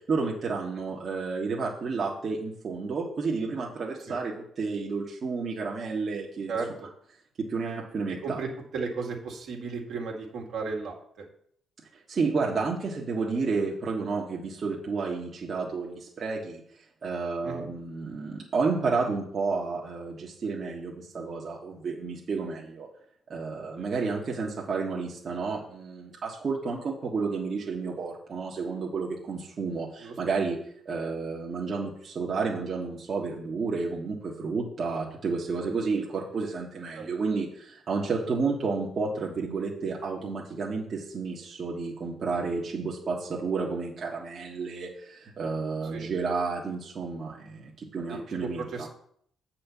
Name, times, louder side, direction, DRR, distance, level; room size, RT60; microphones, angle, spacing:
voice 1, 0.1-6.5 7.4-8.4 12.1-16.6 17.0-22.9 23.3-30.6 30.8-48.9, right 4 dB, 50° right, -3 dB, 1.5 m, -31 dB
voice 2, 8.1-11.3 17.4-17.7 23.8-23.9 30.0-30.1 36.9-37.1 45.9-46.1 48.1-48.9, right 4 dB, 70° right, 0 dB, 2.0 m, -35 dB
7.8 x 4.4 x 6.9 m, 0.65 s
cardioid pair, 90°, 0 cm